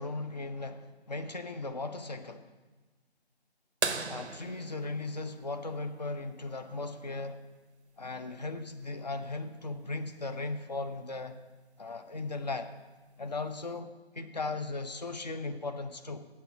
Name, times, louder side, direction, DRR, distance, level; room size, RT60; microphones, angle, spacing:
voice 1, 0.0-2.5 4.1-7.4 8.0-11.4 11.8-12.7 13.2-16.3, left 3 dB, 40° left, 8 dB, 0.6 m, -37 dB
sound 1, 3.8-6.3 8.2-8.3 10.5-10.6 12.3-12.6 13.4-13.5, right 4 dB, 90° right, 0.7 m, -36 dB
8.2 x 6.8 x 6.8 m, 1.2 s
figure-of-eight pair, 150°, 32 cm